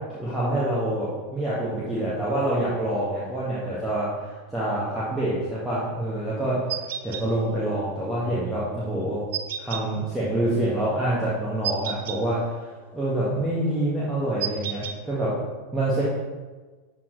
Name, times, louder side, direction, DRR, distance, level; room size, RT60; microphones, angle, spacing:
voice 1, 0.1-6.6 7.0-9.2 9.6-12.4 12.9-15.3 15.7-16.0, right 1 dB, 10° right, -9 dB, 1.9 m, -26 dB
sound 1, 6.7-7.2 9.3-9.8 11.6-12.2 14.4-15.0, right 9 dB, 55° right, 0.6 m, -30 dB
12.0 x 4.5 x 3.3 m, 1.3 s
figure-of-eight pair, 90°, 0 cm